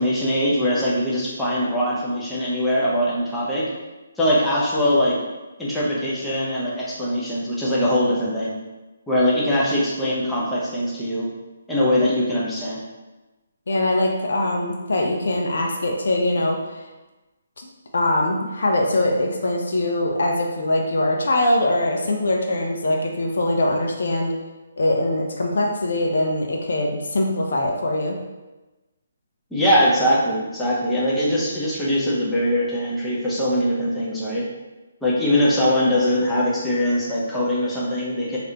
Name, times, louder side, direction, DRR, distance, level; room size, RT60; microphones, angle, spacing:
voice 1, 0.0-3.7 4.2-5.2 5.6-8.5 9.1-11.3 11.7-12.8 29.5-34.4 35.0-38.4, equal, 5° left, -8 dB, 0.7 m, -22 dB
voice 2, 13.7-16.9 17.6-24.3 24.8-28.2, left 1 dB, 70° left, 1 dB, 0.5 m, -22 dB
3.2 x 2.5 x 2.8 m, 1.1 s
hypercardioid pair, 150°, 0 cm